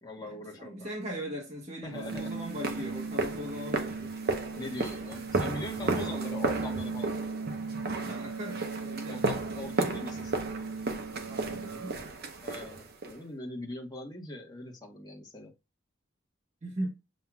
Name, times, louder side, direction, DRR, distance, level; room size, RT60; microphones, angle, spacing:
voice 1, 0.0-0.9 1.8-2.3 2.8-2.9 4.6-7.1 9.1-10.4 12.4-15.5, left 2 dB, 20° left, 1.2 m, -41 dB
voice 2, 0.6-4.2 5.8-6.4 8.0-9.2 11.3-12.0 16.6-16.9, equal, 35° right, 1.4 m, -39 dB
sound 1, 1.9-11.9, right 4 dB, 90° right, 0.4 m, -38 dB
sound 2, 2.1-13.2, right 3 dB, 55° right, 0.9 m, -34 dB
7.4 x 2.7 x 2.2 m
head